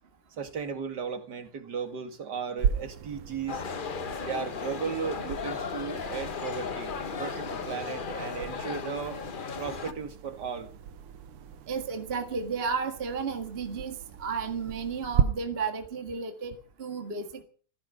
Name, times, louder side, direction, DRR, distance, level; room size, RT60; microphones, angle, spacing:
voice 1, 0.3-3.6 4.2-9.2 9.6-10.7, right 6 dB, 50° right, 2.5 m, -36 dB
sound 1, 2.6-15.2, right 8 dB, 85° right, 1.8 m, -36 dB
sound 2, 3.5-9.9, left 6 dB, 70° left, 0.4 m, -36 dB
voice 2, 11.7-17.4, right 5 dB, 30° right, 1.7 m, -33 dB
15.5 x 15.0 x 5.5 m
omnidirectional pair, 2.4 m